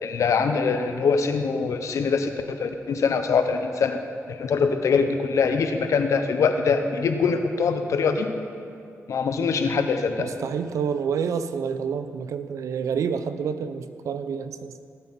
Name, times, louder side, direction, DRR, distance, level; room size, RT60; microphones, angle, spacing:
voice 1, 0.0-4.0 4.3-8.3 9.1-10.3, left 5 dB, 75° left, 7 dB, 1.0 m, -23 dB
voice 2, 10.2-14.7, right 6 dB, 80° right, 11 dB, 0.6 m, -28 dB
18.0 x 8.2 x 4.3 m, 2.4 s
cardioid pair, 65°, 5 cm